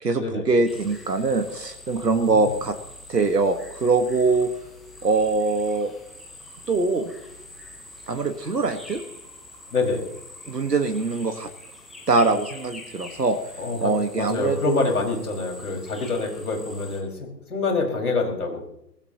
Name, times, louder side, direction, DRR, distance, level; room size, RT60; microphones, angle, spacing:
voice 1, 0.0-2.8 3.1-4.5 5.0-5.9 6.7-7.1 8.1-9.0 10.5-11.5 12.1-13.4 13.8-14.8, right 3 dB, 75° right, 8 dB, 1.7 m, -23 dB
sound 1, 0.7-17.0, left 2 dB, ahead, 1.0 m, -45 dB
voice 2, 2.1-2.5 9.7-10.0 13.6-18.6, left 3 dB, 60° left, 0 dB, 5.6 m, -26 dB
24.5 x 16.0 x 3.0 m, 0.79 s
figure-of-eight pair, 135°, 49 cm